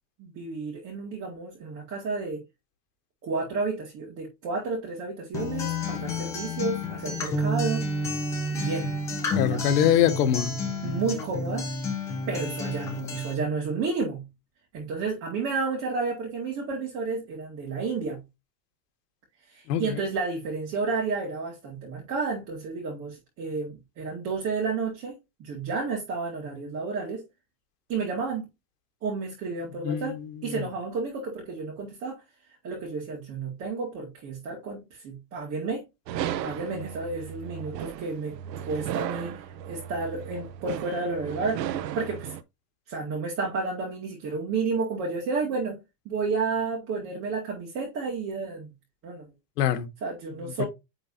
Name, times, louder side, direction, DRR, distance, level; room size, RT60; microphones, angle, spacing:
voice 1, 0.2-2.4 3.2-7.8 8.5-8.9 9.5-9.6 10.8-11.6 12.3-14.2 14.7-18.2 19.5-27.2 27.9-28.5 29.0-30.2 30.4-32.2 32.6-35.8 36.4-38.4 38.7-42.3 42.9-45.8 46.1-48.7 49.0-49.3 50.0-50.6, right 4 dB, 30° right, 1.9 m, -31 dB
Acoustic guitar, 5.3-13.3, left 2 dB, 5° left, 0.4 m, -30 dB
voice 2, 9.3-10.5 19.7-20.0 29.8-30.6 49.6-49.9 50.6-50.7, left 10 dB, 75° left, 1.4 m, -24 dB
sound 1, 36.1-42.4, right 10 dB, 85° right, 1.0 m, -35 dB
9.7 x 3.9 x 2.7 m
supercardioid pair, 175°, 49 cm